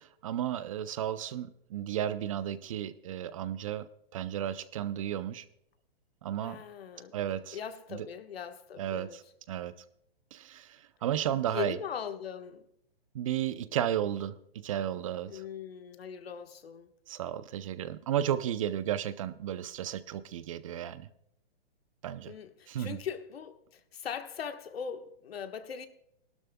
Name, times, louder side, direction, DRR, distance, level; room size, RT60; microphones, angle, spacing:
voice 1, 0.0-3.9 4.1-5.4 6.2-6.6 7.1-7.6 7.9-8.1 8.8-9.1 9.5-9.7 10.3-11.8 13.1-14.4 14.6-15.4 17.1-21.1 22.0-22.3 22.7-23.0, right 10 dB, 35° right, 0.5 m, -33 dB
voice 2, 6.4-7.1 7.5-9.2 11.4-12.7 15.3-16.9 22.3-25.9, left 8 dB, 85° left, 1.4 m, -40 dB
17.5 x 12.5 x 2.2 m
hypercardioid pair, 160°, 30 cm